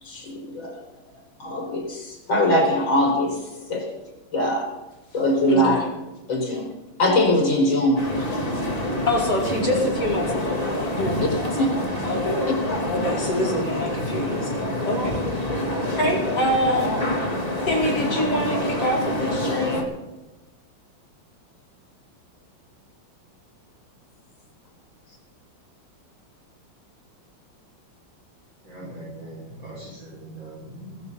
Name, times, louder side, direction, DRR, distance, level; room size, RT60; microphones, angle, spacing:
voice 1, 0.0-0.8 1.4-4.0 4.3-4.8 5.1-5.8 6.3-6.7 7.0-8.3 11.2-11.3 11.6-11.7, left 1 dB, 70° left, 1 dB, 5.6 m, -22 dB
voice 2, 5.5-5.9 9.1-12.4 12.9-15.2 15.8-17.0 17.7-19.9, left 1 dB, 55° left, -2 dB, 5.1 m, -26 dB
sound 1, 8.0-19.8, left 1 dB, 20° left, 3.1 m, -26 dB
voice 3, 28.7-31.0, right 1 dB, 70° right, -6 dB, 6.7 m, -40 dB
20.5 x 13.5 x 4.2 m, 1.1 s
omnidirectional pair, 2.2 m